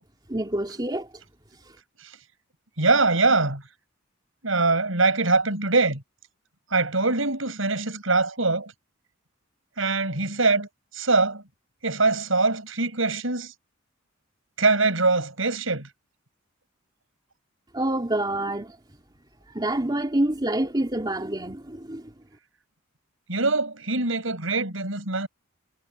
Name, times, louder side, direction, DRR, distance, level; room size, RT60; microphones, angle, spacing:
voice 1, 0.3-1.1 1.7-1.8 17.7-18.8 19.5-22.1, right 1 dB, 20° right, 2.9 m, -27 dB
voice 2, 2.8-3.6 4.4-6.0 6.7-8.7 9.8-11.4 11.8-13.5 14.6-15.9 23.3-25.3, right 3 dB, 75° right, 7.4 m, -23 dB
head